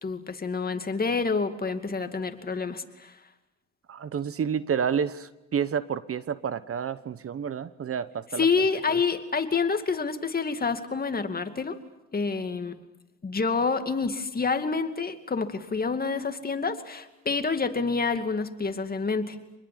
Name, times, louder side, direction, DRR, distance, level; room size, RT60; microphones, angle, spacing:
voice 1, 0.0-3.2 8.4-11.8 12.1-12.8 13.2-19.4, left 4 dB, 30° left, 8 dB, 2.4 m, -28 dB
voice 2, 3.9-8.5 8.9-9.0, right 7 dB, 50° right, 15 dB, 1.2 m, -30 dB
26.5 x 21.0 x 9.5 m, 0.93 s
cardioid pair, 90°, 30 cm